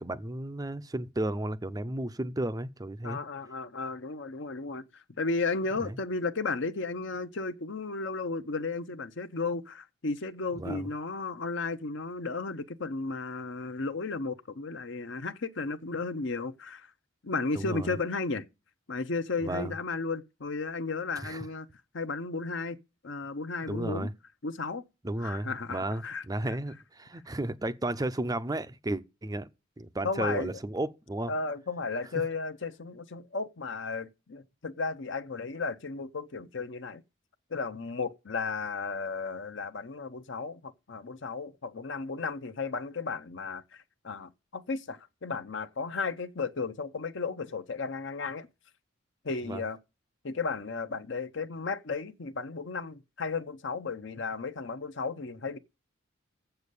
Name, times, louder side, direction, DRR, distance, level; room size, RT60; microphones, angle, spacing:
voice 1, 0.0-3.2 5.8-5.9 10.6-10.9 17.5-17.9 19.4-19.7 21.2-21.4 23.7-24.1 25.0-29.5 29.8-31.3 49.5-49.6, right 1 dB, 15° right, 0.5 m, -33 dB
voice 2, 3.0-16.9 17.2-18.5 18.9-21.7 21.9-22.8 23.0-24.1 24.4-24.8 25.2-26.6 30.0-30.6 31.3-37.0 37.5-48.5 49.2-49.8 50.2-55.6, left 4 dB, 60° left, 0.8 m, -34 dB
7.7 x 6.9 x 8.1 m
head